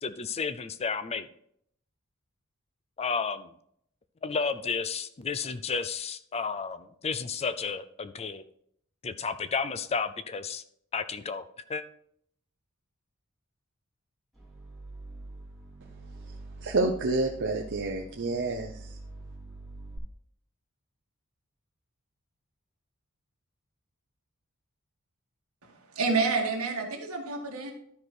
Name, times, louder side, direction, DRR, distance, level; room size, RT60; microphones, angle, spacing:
voice 1, 0.0-1.3 3.0-3.5 4.2-8.4 9.0-10.6 10.9-11.8, left 5 dB, 30° left, 0.4 m, -32 dB
sound 1, 14.3-20.0, right 2 dB, ahead, 2.8 m, -45 dB
voice 2, 16.6-18.7, right 2 dB, 55° right, 0.7 m, -28 dB
voice 3, 25.6-27.7, right 4 dB, 75° right, 1.9 m, -29 dB
12.5 x 4.7 x 4.5 m
head